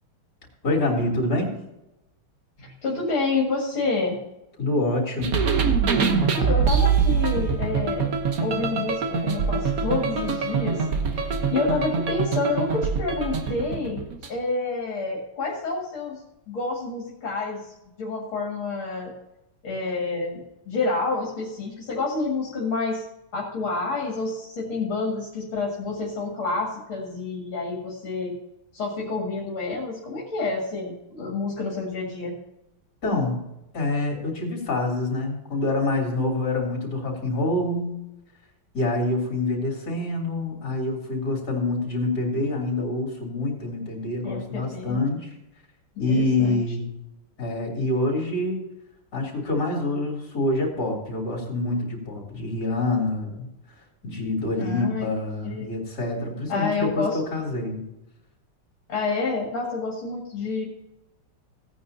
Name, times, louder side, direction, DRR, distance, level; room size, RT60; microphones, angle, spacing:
voice 1, 0.6-1.5 4.6-5.5 33.0-33.4 33.7-38.0 38.7-45.3 46.0-47.0 47.4-48.7 49.1-53.5 54.0-57.8, left 2 dB, 45° left, -1 dB, 4.0 m, -26 dB
voice 2, 2.6-4.2 6.3-8.1 8.4-10.9 11.1-14.0 14.3-19.1 19.6-23.0 23.3-28.3 28.7-32.3 44.2-45.1 46.1-46.6 54.6-55.1 55.4-55.7 56.5-57.2 58.9-60.7, left 3 dB, 70° left, -3 dB, 2.9 m, -28 dB
sound 1, 5.2-14.4, right 6 dB, 50° right, 1.3 m, -24 dB
17.5 x 9.3 x 2.8 m, 0.90 s
omnidirectional pair, 2.4 m